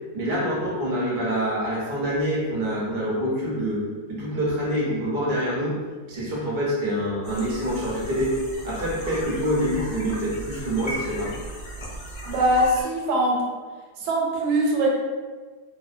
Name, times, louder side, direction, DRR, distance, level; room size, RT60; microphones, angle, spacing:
voice 1, 0.1-3.8 4.1-5.8 6.1-8.4 8.6-11.4, equal, 60° right, -5 dB, 0.5 m, -26 dB
sound 1, 7.2-12.8, right 1 dB, 75° left, 0.5 m, -36 dB
voice 2, 12.3-13.4 14.0-14.9, right 1 dB, 85° right, -2 dB, 1.1 m, -22 dB
2.6 x 2.1 x 2.5 m, 1.4 s
omnidirectional pair, 1.7 m